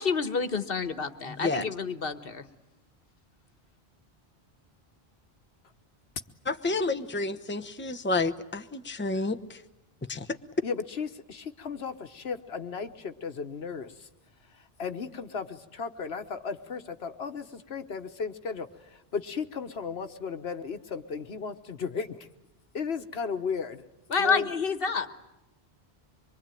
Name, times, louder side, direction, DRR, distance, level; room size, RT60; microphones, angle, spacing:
voice 1, 0.0-2.4 24.1-25.2, left 5 dB, 65° left, 10 dB, 1.6 m, -29 dB
voice 2, 1.3-1.6 6.5-9.4 10.1-10.3, left 3 dB, 10° left, 8 dB, 0.9 m, -30 dB
voice 3, 10.6-13.9 14.8-18.7 19.1-22.2 22.7-23.8 24.2-24.5, left 5 dB, 85° left, 8 dB, 1.4 m, -35 dB
25.0 x 23.5 x 9.1 m, 0.93 s
omnidirectional pair, 1.0 m